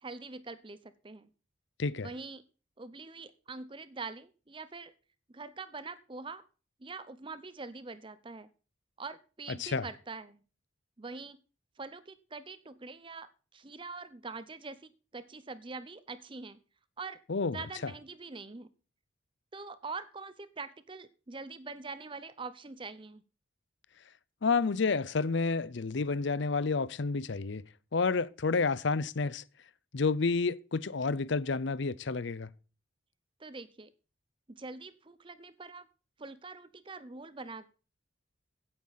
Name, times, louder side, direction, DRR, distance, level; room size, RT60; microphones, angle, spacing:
voice 1, 0.0-1.3 2.0-2.4 2.8-4.9 5.3-6.4 6.8-8.5 9.0-10.4 11.0-11.4 11.8-16.6 17.0-17.2 17.5-18.7 19.5-23.2 33.4-33.9 34.5-35.9 36.2-37.7, right 4 dB, 25° right, 0.6 m, -44 dB
voice 2, 1.8-2.1 9.6-9.9 17.3-17.6 24.4-27.6 27.9-29.4 29.9-32.5, left 4 dB, 60° left, 0.6 m, -30 dB
16.0 x 8.8 x 4.1 m
head